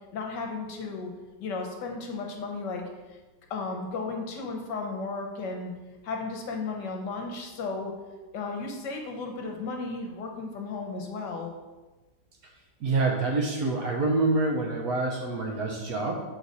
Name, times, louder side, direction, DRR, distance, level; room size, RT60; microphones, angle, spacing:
voice 1, 0.1-1.1 1.4-2.8 3.5-5.7 6.0-7.9 8.3-11.5, left 3 dB, 70° left, 2 dB, 1.4 m, -34 dB
voice 2, 12.8-16.2, right 3 dB, 60° right, 0 dB, 1.0 m, -26 dB
6.2 x 3.9 x 4.1 m, 1.2 s
omnidirectional pair, 2.0 m